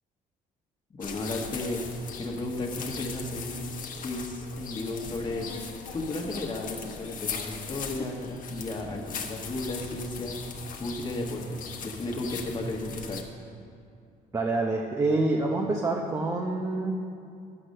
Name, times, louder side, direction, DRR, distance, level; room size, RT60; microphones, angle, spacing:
sound 1, 1.0-13.2, left 5 dB, 50° left, 1.1 m, -39 dB
voice 1, 1.0-1.8 2.2-3.7 4.0-5.5 5.9-10.4 10.8-13.2, left 2 dB, 25° left, 0 dB, 1.4 m, -34 dB
voice 2, 14.3-16.9, right 2 dB, 20° right, 1 dB, 0.7 m, -27 dB
9.8 x 6.0 x 6.5 m, 2.4 s
cardioid pair, 110°, 17 cm